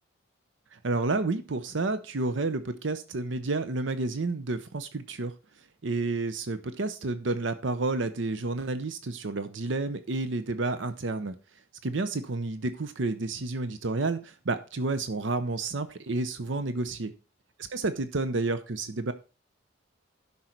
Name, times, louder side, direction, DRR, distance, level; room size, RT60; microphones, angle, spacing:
voice 1, 0.7-5.3 5.8-11.3 11.8-17.1 17.7-19.1, right 3 dB, 70° right, 0.7 m, -30 dB
12.0 x 5.5 x 4.4 m
head